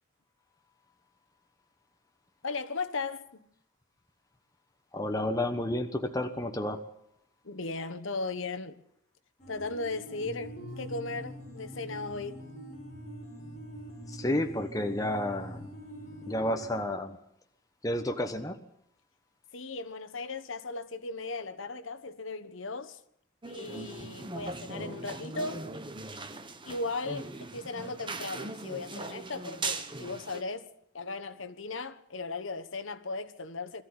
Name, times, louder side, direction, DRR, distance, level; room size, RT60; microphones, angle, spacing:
voice 1, 2.4-3.4 7.4-8.8 9.5-12.4 19.5-23.0 23.5-25.7 26.6-33.8, left 3 dB, 70° left, 1.3 m, -37 dB
voice 2, 4.9-6.8 14.1-15.7 16.3-17.2 17.8-18.6, left 1 dB, 15° left, 1.2 m, -31 dB
sound 1, 9.4-16.8, equal, 35° left, 5.4 m, -44 dB
sound 2, 23.4-30.4, right 3 dB, 25° right, 1.2 m, -39 dB
22.0 x 14.0 x 9.8 m
head